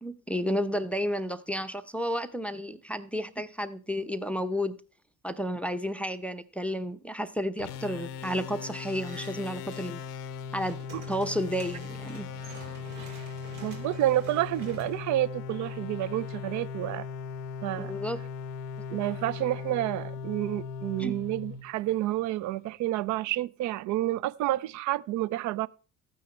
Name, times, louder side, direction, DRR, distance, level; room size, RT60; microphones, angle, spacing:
voice 1, 0.0-4.7 5.2-10.0 10.5-10.8 11.1-12.3 17.8-18.2 18.8-18.9 21.0-21.1, equal, 5° left, 0.6 m, -31 dB
sound 1, 7.6-22.2, left 5 dB, 80° left, 0.7 m, -39 dB
sound 2, 9.0-10.2 10.5-15.8, right 4 dB, 65° right, 2.6 m, -49 dB
voice 2, 13.6-17.1 17.6-17.9 18.9-25.7, right 15 dB, 40° right, 0.4 m, -29 dB
13.5 x 9.3 x 3.2 m
hypercardioid pair, 60°, 47 cm